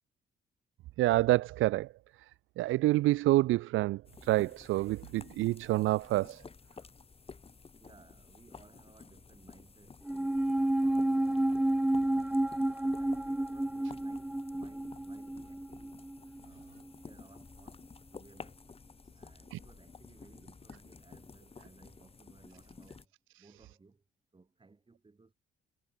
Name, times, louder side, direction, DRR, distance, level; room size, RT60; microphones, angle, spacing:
voice 1, 1.0-1.9 2.6-6.4 19.5-19.6, right 17 dB, 85° right, 0.5 m, -27 dB
sound 1, 4.0-23.0, left 4 dB, 30° left, 2.0 m, -53 dB
voice 2, 7.8-12.5 12.8-16.0 16.4-18.7 19.1-23.1 23.4-24.0 24.3-25.3, right 3 dB, 25° right, 7.0 m, -60 dB
sound 2, 10.1-16.6 16.9-17.0, right 1 dB, 5° right, 0.4 m, -31 dB
cardioid pair, 90°, 20 cm